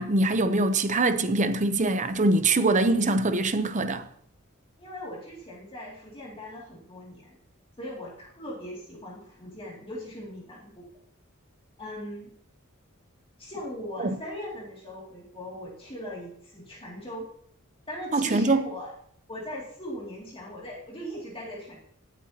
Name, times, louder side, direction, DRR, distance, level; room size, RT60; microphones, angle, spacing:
voice 1, 0.0-4.0 14.0-14.1 18.1-18.7, right 2 dB, 35° right, 0.7 m, -23 dB
voice 2, 4.8-7.4 7.8-10.9 11.8-12.3 13.4-17.3 17.9-18.9 19.3-21.8, equal, 25° left, 2.5 m, -39 dB
18.5 x 8.1 x 2.9 m
head